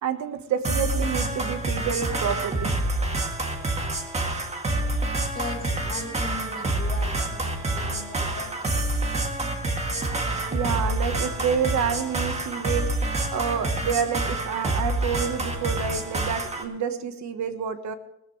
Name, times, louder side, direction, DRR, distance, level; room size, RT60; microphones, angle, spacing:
voice 1, 0.0-2.7 10.5-17.9, right 7 dB, 70° right, 9 dB, 1.3 m, -28 dB
sound 1, 0.6-16.6, right 2 dB, 20° right, 1.7 m, -27 dB
voice 2, 5.4-8.5, left 4 dB, 30° left, 2 dB, 2.2 m, -38 dB
20.0 x 14.0 x 3.2 m, 0.84 s
wide cardioid pair, 175°, 30 cm